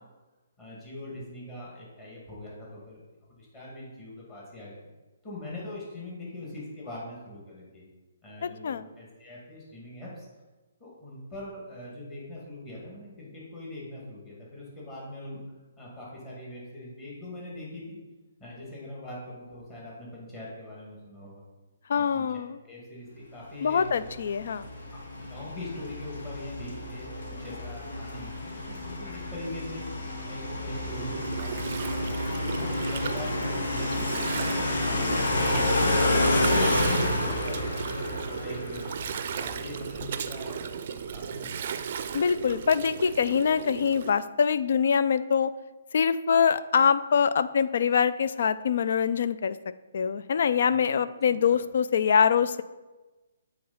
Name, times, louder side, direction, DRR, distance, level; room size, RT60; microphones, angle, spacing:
voice 1, 0.6-3.0 3.3-4.8 5.2-7.8 8.2-10.3 10.8-15.4 15.8-18.0 18.4-21.4 21.9-22.3 22.6-24.1 25.2-29.9 30.2-38.8 39.3-41.5 41.8-42.5 51.3-51.6, left 1 dB, 20° left, -6 dB, 2.3 m, -42 dB
voice 2, 8.4-8.8 21.9-22.6 23.6-24.7 42.1-45.5 45.9-49.6 49.9-52.6, left 7 dB, 60° left, 14 dB, 0.4 m, -24 dB
sound 1, 23.8-40.0, left 1 dB, 75° left, 2.1 m, -29 dB
Gurgling, 30.8-44.1, right 7 dB, 50° right, 0.4 m, -36 dB
8.4 x 3.9 x 4.2 m, 1.2 s
hypercardioid pair, 155°, 0 cm